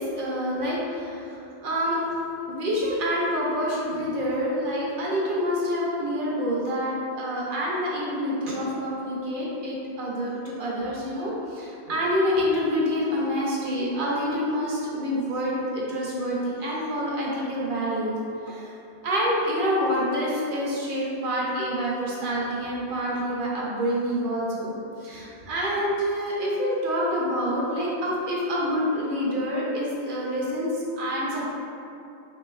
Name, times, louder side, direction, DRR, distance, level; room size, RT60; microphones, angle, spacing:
voice 1, 0.0-2.0 2.5-18.2 18.4-18.7 19.0-24.7 25.0-31.5, equal, 55° right, -4 dB, 0.7 m, -27 dB
3.4 x 3.0 x 2.2 m, 2.6 s
omnidirectional pair, 1.1 m